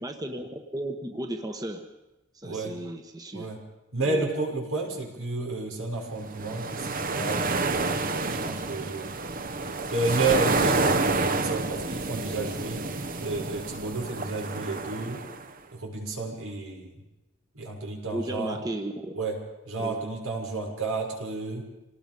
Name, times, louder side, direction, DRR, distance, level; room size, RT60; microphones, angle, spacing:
voice 1, 0.0-1.8 2.3-3.5 4.0-4.2 18.1-19.1 19.8-20.0, right 1 dB, 20° right, 5 dB, 1.2 m, -34 dB
voice 2, 2.4-2.8 3.3-3.6 3.9-9.1 9.9-12.9 13.2-15.3 15.7-16.9 17.5-18.6 19.1-19.4 19.7-21.7, right 3 dB, 90° right, 0 dB, 6.4 m, -31 dB
sound 1, 6.3-15.5, right 3 dB, 40° right, 1.0 m, -29 dB
27.5 x 19.0 x 5.4 m, 0.99 s
head